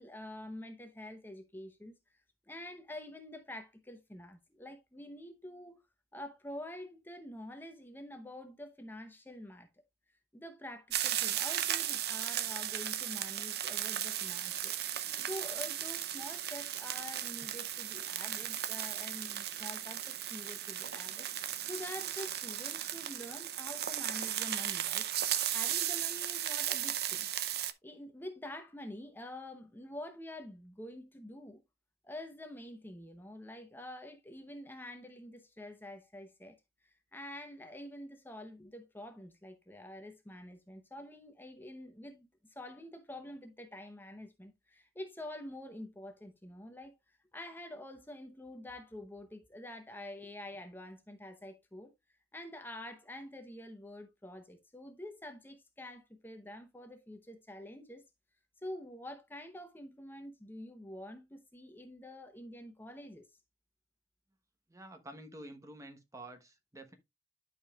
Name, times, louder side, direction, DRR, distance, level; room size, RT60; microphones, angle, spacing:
voice 1, 0.0-1.9 2.5-5.8 6.1-9.7 10.3-27.3 27.8-31.6 32.0-36.5 36.8-51.9 52.3-58.0 58.6-63.3, left 1 dB, 10° left, 0.8 m, -47 dB
sound 1, 10.9-27.7, right 11 dB, 60° right, 0.6 m, -36 dB
voice 2, 64.7-66.9, right 1 dB, 20° right, 1.0 m, -49 dB
12.0 x 5.1 x 2.3 m
head